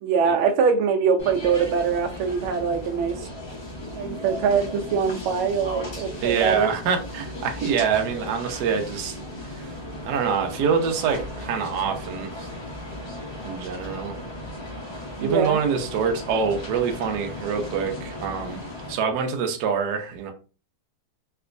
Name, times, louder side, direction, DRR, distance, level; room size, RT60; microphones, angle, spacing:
voice 1, 0.0-3.3 3.9-6.7 15.2-15.6, right 6 dB, 85° right, 1.4 m, -23 dB
sound 1, 1.2-18.9, left 1 dB, 45° left, 0.3 m, -36 dB
voice 2, 6.2-9.2 9.4-9.8 10.0-12.3 13.4-14.2 15.2-18.6 18.9-20.3, right 6 dB, 65° right, 1.1 m, -25 dB
3.3 x 2.9 x 2.5 m
omnidirectional pair, 2.2 m